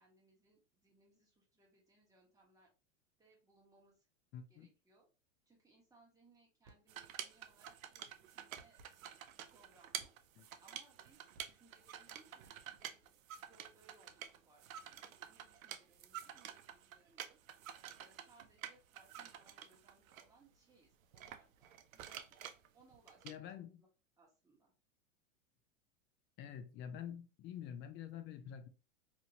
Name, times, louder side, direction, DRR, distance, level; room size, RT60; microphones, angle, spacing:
voice 1, 0.0-2.7 3.2-4.1 4.5-5.1 5.5-9.2 9.5-10.1 10.6-17.4 18.0-22.4 22.7-23.9 24.2-24.7, right 3 dB, 10° right, 1.2 m, -69 dB
voice 2, 4.3-4.7 10.4-10.5 23.2-23.8 26.4-28.7, left 9 dB, 30° left, 0.4 m, -47 dB
sound 1, 6.6-7.0 8.6-9.0 10.0-10.5 11.3-11.8 12.4-13.0, right 3 dB, 50° right, 0.8 m, -64 dB
sound 2, 6.9-20.2 21.1-23.3, right 10 dB, 85° right, 0.5 m, -50 dB
2.8 x 2.7 x 2.8 m
hypercardioid pair, 110°, 40 cm